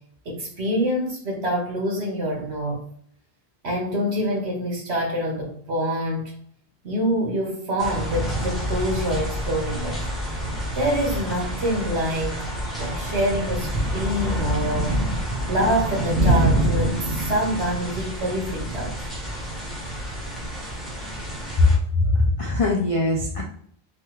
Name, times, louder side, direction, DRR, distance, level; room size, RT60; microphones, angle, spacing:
voice 1, 0.2-2.8 3.6-6.3 6.8-10.0 10.7-12.4 12.8-14.9 15.5-19.1, equal, 75° right, 0 dB, 1.2 m, -26 dB
sound 1, 7.8-21.8, right 1 dB, ahead, 0.9 m, -27 dB
voice 2, 22.0-23.4, left 2 dB, 55° left, 0 dB, 0.4 m, -21 dB
3.2 x 2.3 x 3.0 m, 0.64 s
omnidirectional pair, 1.1 m